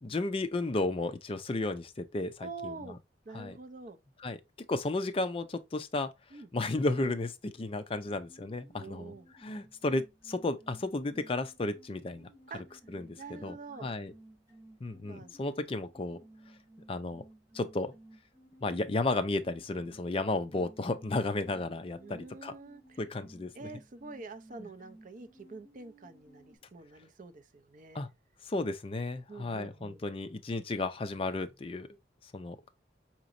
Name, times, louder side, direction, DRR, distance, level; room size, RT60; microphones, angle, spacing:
voice 1, 0.0-3.0 3.3-3.6 4.2-4.4 4.7-6.1 6.5-9.1 9.4-12.3 12.9-14.1 14.8-16.2 16.9-17.2 17.5-17.9 18.6-22.5 23.0-23.5 24.6-24.7 27.9-28.1 28.5-31.9 32.3-32.7, left 2 dB, 30° left, 0.4 m, -33 dB
voice 2, 2.4-3.0 3.3-4.0 6.3-6.5 8.8-9.3 12.5-12.8 13.2-13.9 15.1-15.3 22.0-23.0 23.5-28.0 29.3-30.0, right 3 dB, 40° right, 0.5 m, -46 dB
sound 1, 8.0-26.6, right 1 dB, 15° right, 1.4 m, -58 dB
5.0 x 3.0 x 2.5 m
head